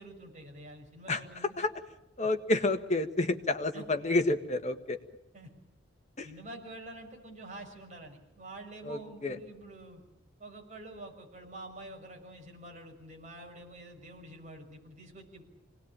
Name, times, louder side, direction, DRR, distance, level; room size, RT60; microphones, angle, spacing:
voice 1, 0.0-1.6 3.7-3.8 5.3-5.5 6.2-10.0 10.4-15.4, right 1 dB, 40° right, 1 dB, 6.0 m, -47 dB
voice 2, 2.2-5.0 6.2-6.3 8.8-9.4, left 2 dB, 40° left, 6 dB, 1.6 m, -29 dB
26.0 x 19.0 x 9.0 m, 0.95 s
head